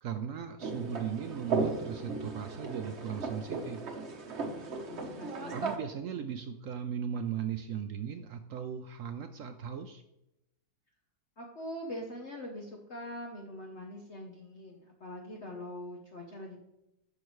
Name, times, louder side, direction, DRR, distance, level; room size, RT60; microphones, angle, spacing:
voice 1, 0.0-3.8 5.5-10.0, right 8 dB, 75° right, 8 dB, 0.7 m, -37 dB
sound 1, 0.6-5.8, right 3 dB, 45° right, 1.1 m, -36 dB
voice 2, 4.6-5.6 11.4-16.6, left 1 dB, 45° left, 0 dB, 1.1 m, -43 dB
10.5 x 6.4 x 3.2 m, 0.88 s
omnidirectional pair, 1.9 m